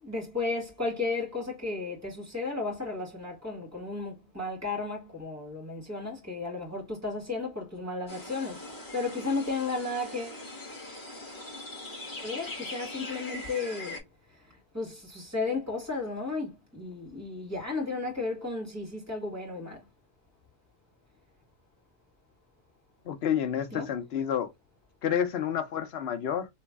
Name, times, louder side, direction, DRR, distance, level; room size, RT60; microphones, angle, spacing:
voice 1, 0.0-10.4 12.2-14.0 14.3-19.8 23.7-23.9, left 3 dB, 15° right, 1.6 m, -34 dB
sound 1, 8.1-14.0, left 2 dB, 45° left, 1.3 m, -41 dB
voice 2, 23.1-24.5 25.0-26.5, left 9 dB, 65° left, 0.8 m, -29 dB
3.1 x 2.6 x 3.5 m
omnidirectional pair, 1.2 m